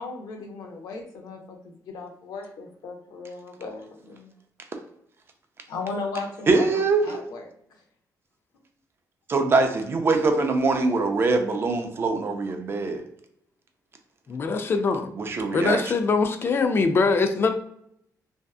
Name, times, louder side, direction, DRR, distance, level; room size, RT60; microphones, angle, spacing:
voice 1, 0.0-1.4 1.9-4.3 5.7-7.4, left 4 dB, 75° left, 2 dB, 0.6 m, -36 dB
voice 2, 6.5-7.2 9.3-13.0 15.2-15.8, right 3 dB, 35° right, 5 dB, 0.4 m, -23 dB
voice 3, 14.3-15.1 15.5-17.5, left 4 dB, 35° left, 8 dB, 0.3 m, -22 dB
2.6 x 2.3 x 2.3 m, 0.72 s
cardioid pair, 130°, 7 cm